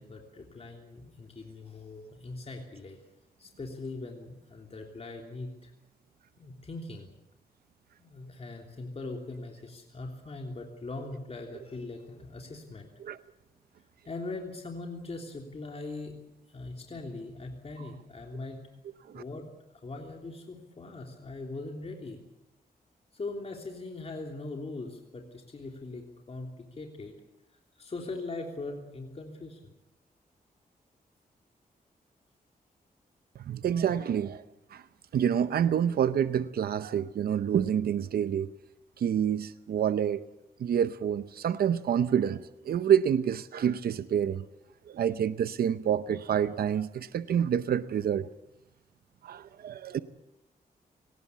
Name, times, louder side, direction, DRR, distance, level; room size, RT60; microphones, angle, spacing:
voice 1, 0.0-3.0 3.4-5.7 6.4-7.1 8.0-12.9 14.0-16.1 16.5-18.7 19.1-22.2 23.1-27.1 27.8-29.7, left 2 dB, 40° left, 3.3 m, -41 dB
voice 2, 33.5-34.4 34.7-34.8 35.1-38.5 39.0-40.2 40.6-44.4 44.9-48.3 49.2-50.0, right 9 dB, 90° right, 0.7 m, -27 dB
23.5 x 19.0 x 8.2 m
wide cardioid pair, 100°, 16 cm